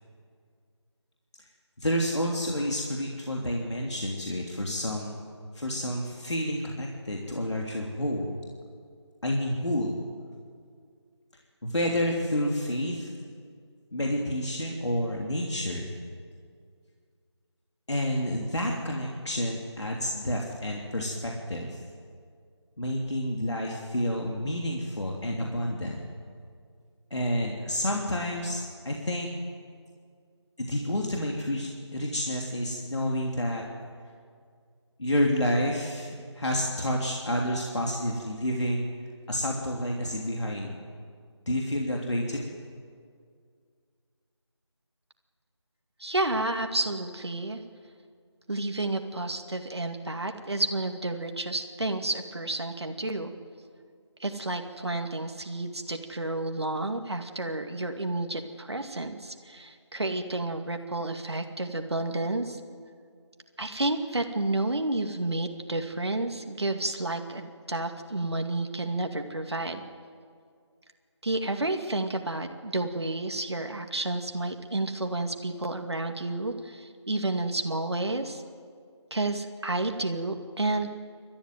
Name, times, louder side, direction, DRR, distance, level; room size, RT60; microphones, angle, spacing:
voice 1, 1.8-5.2 5.5-8.4 9.2-10.0 11.6-13.1 13.9-15.9 17.9-21.8 22.8-26.0 27.1-29.3 30.6-33.6 35.0-38.9 39.3-40.7 41.5-42.4, equal, 70° left, -1 dB, 3.2 m, -29 dB
voice 2, 46.0-47.6 48.5-53.3 54.2-62.6 63.6-69.8 71.2-78.4 79.1-80.9, right 2 dB, 65° right, 5 dB, 2.4 m, -30 dB
27.0 x 14.0 x 9.3 m, 2.1 s
figure-of-eight pair, 175°, 15 cm